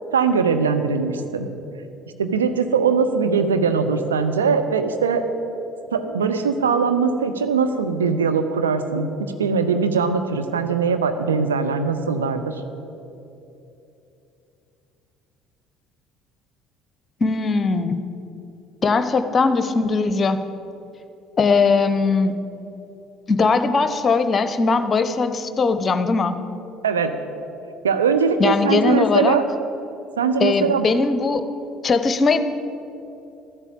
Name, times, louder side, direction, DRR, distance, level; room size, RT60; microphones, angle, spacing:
voice 1, 0.1-1.5 2.2-5.2 5.9-9.1 9.4-12.6 26.8-27.2 27.8-29.4 30.2-30.9, right 5 dB, 80° right, 7 dB, 0.7 m, -21 dB
voice 2, 17.2-18.0 18.8-20.4 21.4-22.4 23.3-26.4 28.4-29.4 30.4-31.4 31.8-32.4, left 4 dB, 30° left, 10 dB, 0.9 m, -20 dB
12.5 x 8.2 x 8.7 m, 2.9 s
figure-of-eight pair, 55°, 0 cm